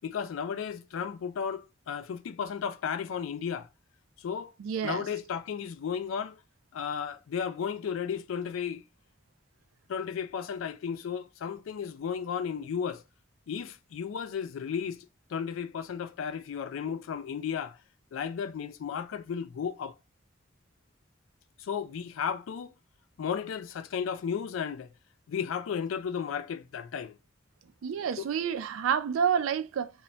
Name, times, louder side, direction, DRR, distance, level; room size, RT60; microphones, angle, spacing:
voice 1, 0.0-3.7 4.2-4.5 4.8-6.4 6.7-8.8 9.9-13.0 13.5-17.8 18.1-19.9 21.6-22.7 23.2-24.9 25.3-27.2 28.2-28.3, left 7 dB, 90° left, 0.3 m, -34 dB
voice 2, 4.6-5.0 27.8-29.9, right 7 dB, 90° right, 0.3 m, -29 dB
2.2 x 2.1 x 3.8 m
head